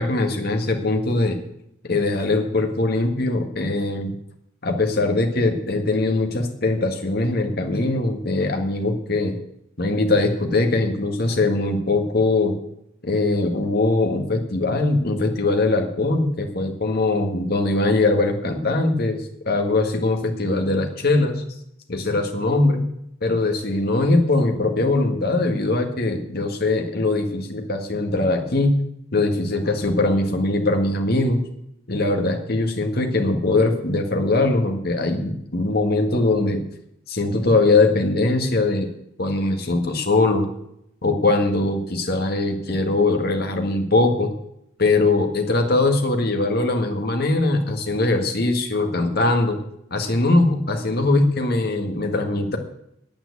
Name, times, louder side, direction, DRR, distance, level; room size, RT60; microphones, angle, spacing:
voice 1, 0.0-1.4 1.8-4.1 4.6-9.4 9.8-12.5 13.0-21.4 21.9-22.8 23.2-28.8 29.1-31.4 31.9-36.6 37.1-38.9 39.2-40.5 41.0-44.3 44.8-49.6 49.9-52.6, left 2 dB, 50° left, 4 dB, 1.7 m, -21 dB
8.9 x 8.9 x 8.3 m, 0.77 s
head